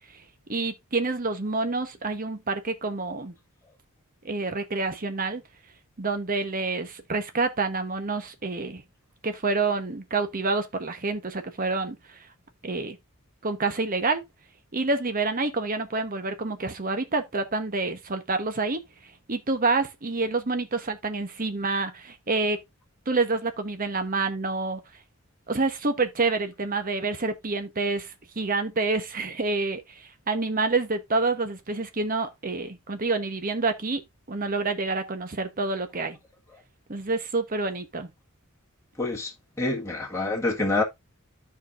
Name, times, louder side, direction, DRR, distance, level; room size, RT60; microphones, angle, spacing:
voice 1, 0.5-3.3 4.2-5.4 6.0-8.8 9.2-12.2 12.6-13.0 13.4-14.2 14.7-18.8 19.3-22.6 23.1-24.8 25.5-34.0 34.3-36.2 36.9-38.1, right 3 dB, 40° right, 1.0 m, -28 dB
voice 2, 39.0-39.3 39.6-40.8, left 2 dB, 15° left, 1.7 m, -26 dB
13.5 x 4.9 x 2.5 m
head